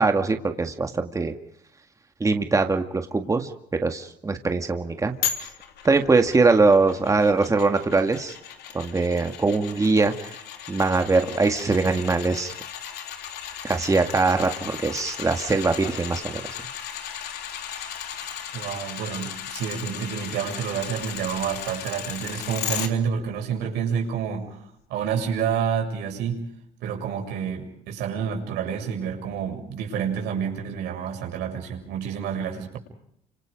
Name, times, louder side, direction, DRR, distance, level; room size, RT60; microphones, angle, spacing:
voice 1, 0.0-1.3 2.2-3.5 3.8-5.1 5.8-8.3 8.7-10.4 10.7-12.5 13.6-16.4, right 3 dB, 20° right, 5 dB, 1.9 m, -22 dB
sound 1, 5.2-22.9 23.3-23.4, left 9 dB, 75° left, 3.0 m, -36 dB
voice 2, 18.5-24.6 24.9-26.5 26.8-32.8, right 7 dB, 90° right, 2 dB, 7.4 m, -29 dB
29.5 x 26.5 x 5.2 m, 0.74 s
cardioid pair, 110°, 17 cm